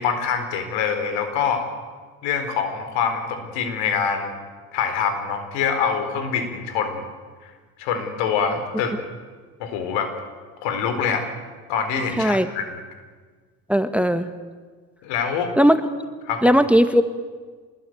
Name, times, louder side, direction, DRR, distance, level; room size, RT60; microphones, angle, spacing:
voice 1, 0.0-1.6 2.2-4.3 4.7-7.0 7.4-7.5 7.8-9.0 9.6-10.1 10.6-11.3 11.7-12.8 15.0-15.5 16.3-16.6, left 6 dB, 75° left, 7 dB, 4.5 m, -25 dB
voice 2, 12.2-12.5 13.7-14.3 15.6-15.8 16.4-17.0, equal, 5° right, 10 dB, 1.6 m, -17 dB
25.5 x 20.5 x 9.3 m, 1.5 s
hypercardioid pair, 60°, 44 cm